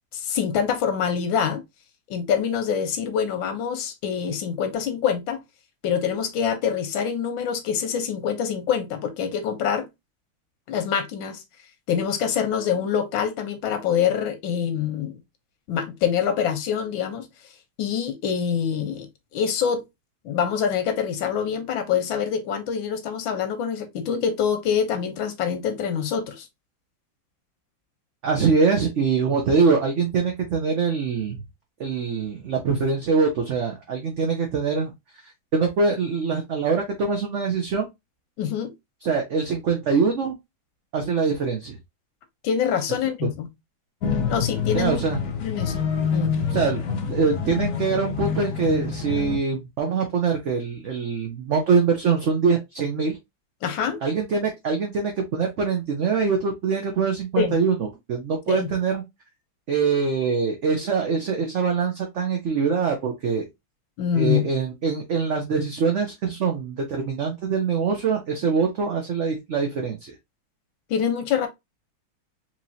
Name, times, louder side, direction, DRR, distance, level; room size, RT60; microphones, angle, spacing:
voice 1, 0.1-1.6 2.1-5.4 5.8-9.9 10.7-11.4 11.9-15.2 15.7-17.3 17.8-19.1 19.3-19.8 20.2-26.5 34.2-34.3 38.4-38.7 42.4-43.5 44.3-45.0 45.4-45.8 46.1-46.4 53.6-54.0 57.4-57.6 58.5-58.7 64.0-64.4 70.9-71.5, left 7 dB, 80° left, 1.6 m, -25 dB
voice 2, 28.2-31.4 31.8-34.9 35.5-37.9 39.0-40.4 40.9-41.8 43.2-43.3 44.7-45.2 46.5-53.2 54.0-59.0 59.7-63.5 64.1-70.1, right 5 dB, 55° right, 0.8 m, -23 dB
sound 1, 44.0-49.4, left 6 dB, 60° left, 1.1 m, -27 dB
4.4 x 3.1 x 2.7 m
omnidirectional pair, 2.1 m